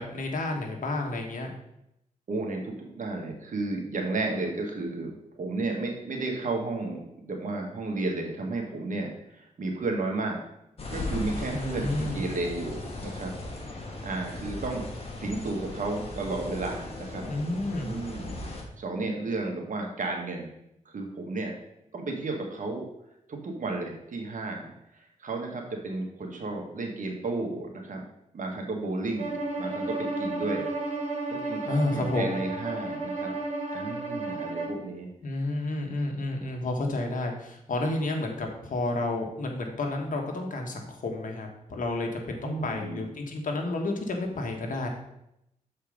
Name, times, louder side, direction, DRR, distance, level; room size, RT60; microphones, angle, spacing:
voice 1, 0.0-1.5 11.5-12.2 17.3-17.9 31.7-32.4 35.2-44.9, left 2 dB, 70° left, 2 dB, 1.5 m, -30 dB
voice 2, 2.3-5.1 5.3-10.4 10.9-13.3 14.0-14.8 15.2-17.3 17.8-18.3 18.8-20.5 20.9-21.5 21.9-22.8 23.3-28.0 28.3-30.7 31.3-33.3 33.7-35.1 42.4-43.1, right 2 dB, 65° right, 1 dB, 1.6 m, -33 dB
sound 1, 10.8-18.6, left 2 dB, 45° left, 1.8 m, -37 dB
Bowed string instrument, 29.2-34.8, right 2 dB, 50° right, 2.5 m, -32 dB
7.1 x 4.5 x 5.1 m, 0.81 s
cardioid pair, 70°, 14 cm